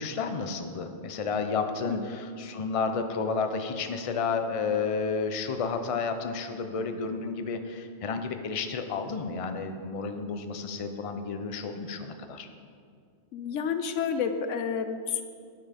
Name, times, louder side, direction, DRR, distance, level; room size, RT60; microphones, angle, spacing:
voice 1, 0.0-12.5, left 5 dB, 35° left, 7 dB, 0.6 m, -31 dB
voice 2, 13.3-15.2, left 6 dB, 90° left, 9 dB, 1.1 m, -30 dB
9.6 x 9.3 x 5.2 m, 2.2 s
omnidirectional pair, 1.2 m